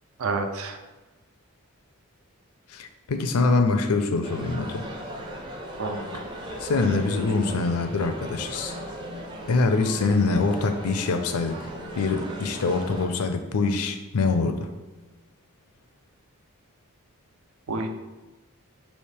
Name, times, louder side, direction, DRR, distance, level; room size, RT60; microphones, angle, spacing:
voice 1, 0.2-0.8 5.8-6.2 17.7-17.9, right 3 dB, 70° right, 6 dB, 0.5 m, -29 dB
voice 2, 2.7-4.9 6.6-8.8 9.5-14.7, left 3 dB, 80° left, 7 dB, 0.5 m, -24 dB
sound 1, 4.2-13.1, right 1 dB, 20° right, 0.6 m, -37 dB
3.3 x 2.9 x 4.6 m, 1.2 s
head